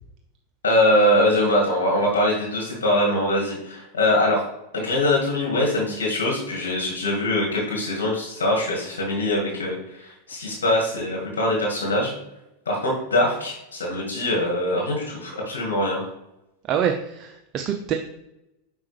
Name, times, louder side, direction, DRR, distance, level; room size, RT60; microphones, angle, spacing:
voice 1, 0.6-4.4 4.7-12.1 12.7-16.1, left 1 dB, 80° left, -2 dB, 2.0 m, -23 dB
voice 2, 16.7-17.9, right 8 dB, 40° right, 4 dB, 0.6 m, -25 dB
5.9 x 5.4 x 3.4 m, 0.88 s
hypercardioid pair, 95°, 0 cm